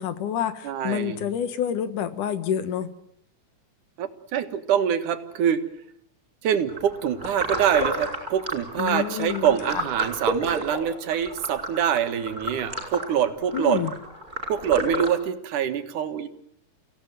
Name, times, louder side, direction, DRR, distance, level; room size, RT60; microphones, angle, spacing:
voice 1, 0.0-2.9 8.8-9.8 13.5-14.0, left 9 dB, 85° left, 11 dB, 3.0 m, -28 dB
voice 2, 0.6-1.2 4.0-5.6 6.4-13.8 14.5-16.3, right 9 dB, 85° right, 8 dB, 3.1 m, -25 dB
sound 1, 6.7-15.1, right 1 dB, 20° right, 5.3 m, -31 dB
29.5 x 16.5 x 9.2 m, 0.73 s
omnidirectional pair, 3.5 m